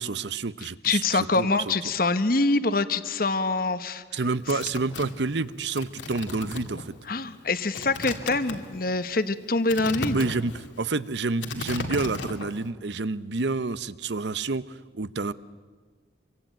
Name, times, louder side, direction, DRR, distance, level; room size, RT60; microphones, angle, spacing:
voice 1, 0.0-1.7 4.1-6.9 10.0-15.3, right 3 dB, 70° right, 16 dB, 0.8 m, -29 dB
voice 2, 0.8-4.0 4.5-4.6 7.1-10.2, left 3 dB, 50° left, 12 dB, 1.1 m, -25 dB
sound 1, 4.2-12.7, left 3 dB, 80° left, 2.3 m, -36 dB
27.0 x 24.0 x 9.0 m, 1.4 s
head